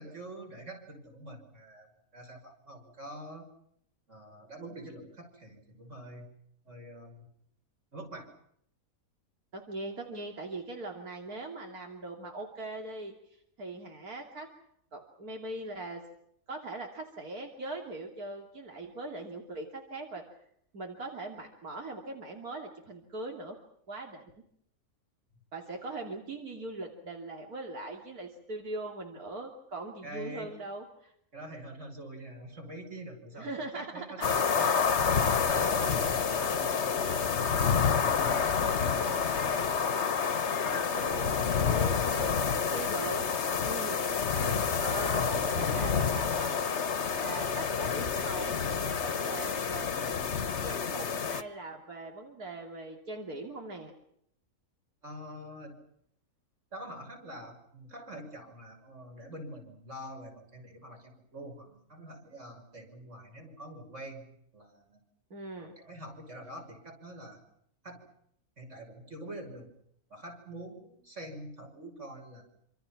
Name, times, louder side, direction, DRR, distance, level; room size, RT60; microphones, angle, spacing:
voice 1, 0.0-1.9 2.1-3.5 4.1-6.3 6.6-7.3 7.9-8.3 30.0-30.6 31.3-34.8 35.3-36.9 37.4-39.6 40.3-40.5 44.9-45.9 47.8-48.0 55.0-55.8 56.7-65.0 65.6-67.4 67.8-68.0 68.6-69.7 70.1-72.4, right 1 dB, 55° right, 3 dB, 6.5 m, -45 dB
voice 2, 9.5-14.5 14.9-16.0 16.5-20.2 20.7-23.6 23.9-24.3 25.5-31.1 33.4-34.3 34.6-34.8 40.6-44.0 44.4-46.7 47.1-49.9 50.6-53.9 65.3-65.8, right 2 dB, 85° right, 2 dB, 3.3 m, -41 dB
sound 1, 34.2-51.4, left 6 dB, 50° left, 1.4 m, -28 dB
27.5 x 26.5 x 6.0 m, 0.71 s
omnidirectional pair, 1.5 m